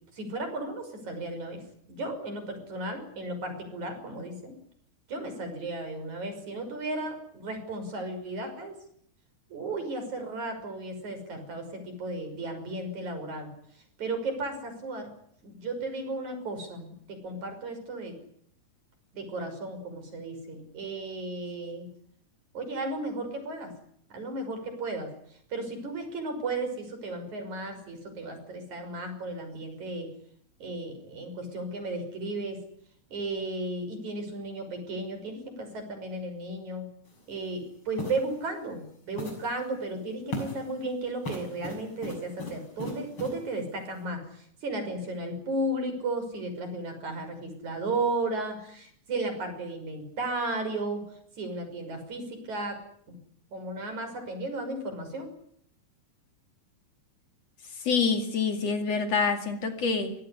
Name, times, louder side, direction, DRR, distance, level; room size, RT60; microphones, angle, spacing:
voice 1, 0.1-1.6 1.9-4.5 5.1-8.7 9.5-13.5 14.0-15.1 15.4-17.0 17.2-18.2 19.1-21.9 22.5-23.7 24.1-25.1 25.5-30.1 30.6-32.6 33.1-36.9 37.3-51.0 51.4-52.8 53.1-53.2 53.5-55.3, right 2 dB, 65° right, 7.4 m, -34 dB
sound 1, 37.1-37.2 38.0-38.3 39.2-39.6 40.3-40.7 41.2-43.4, left 1 dB, 40° left, 7.1 m, -37 dB
voice 2, 57.8-60.1, left 5 dB, 55° left, 3.3 m, -26 dB
24.5 x 18.5 x 9.9 m
omnidirectional pair, 3.7 m